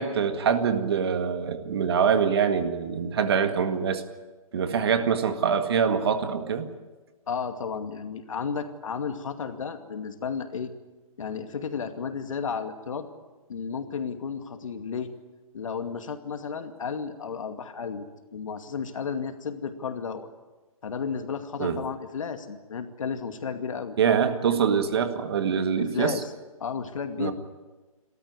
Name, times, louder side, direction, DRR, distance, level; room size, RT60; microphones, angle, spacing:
voice 1, 0.0-4.0 4.5-6.7 21.6-21.8 24.0-26.2 27.2-27.3, right 7 dB, 45° right, 8 dB, 1.9 m, -24 dB
voice 2, 7.3-10.7 11.2-13.1 13.5-15.1 15.5-18.1 18.3-20.3 20.8-24.0 24.5-24.6 25.8-26.3 26.6-27.3, left 6 dB, 65° left, 7 dB, 2.4 m, -33 dB
28.5 x 13.5 x 9.6 m, 1.2 s
hypercardioid pair, 170°, 18 cm